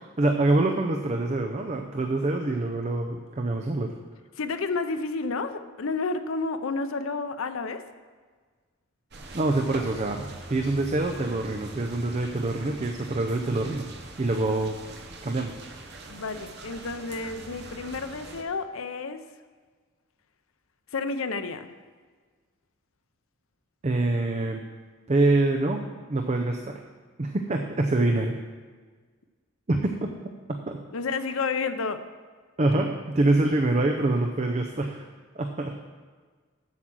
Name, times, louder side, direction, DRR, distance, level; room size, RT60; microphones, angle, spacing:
voice 1, 0.0-3.9 9.3-13.9 14.2-14.8 15.2-15.6 23.8-24.6 25.1-25.8 26.1-26.8 27.2-28.4 29.7-29.9 30.5-30.8 32.6-35.0 35.4-35.8, right 2 dB, 35° right, 3 dB, 0.5 m, -25 dB
voice 2, 4.4-7.8 16.1-19.2 20.9-21.7 30.9-32.0, left 4 dB, 85° left, 10 dB, 0.6 m, -30 dB
sound 1, 9.1-18.4, right 2 dB, 55° right, 1.0 m, -43 dB
8.1 x 7.6 x 6.1 m, 1.5 s
head